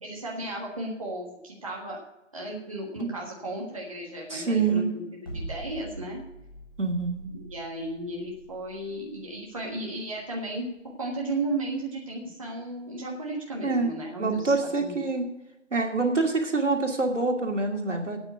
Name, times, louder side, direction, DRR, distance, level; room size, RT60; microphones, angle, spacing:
voice 1, 0.0-2.0 2.3-5.0 5.3-6.2 7.3-10.7 11.0-15.1, right 2 dB, 25° right, -3 dB, 1.4 m, -34 dB
voice 2, 4.3-4.9 6.8-7.3 13.6-15.3 15.7-18.2, right 3 dB, 75° right, 2 dB, 2.6 m, -26 dB
sound 1, 5.3-11.4, right 1 dB, 20° left, 1.4 m, -43 dB
8.9 x 8.7 x 8.1 m, 0.93 s
figure-of-eight pair, 175°, 37 cm